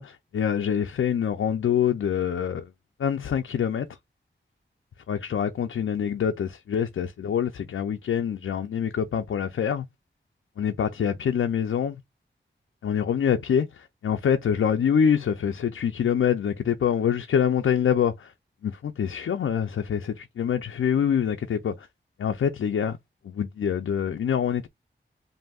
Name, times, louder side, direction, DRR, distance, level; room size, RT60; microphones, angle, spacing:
voice 1, 0.0-2.7 3.0-3.9 5.1-9.9 10.6-12.0 12.8-18.3 18.6-21.9 22.2-23.0 23.2-24.7, left 8 dB, 90° left, 0.5 m, -25 dB
7.5 x 2.7 x 2.3 m
cardioid pair, 55°, 20 cm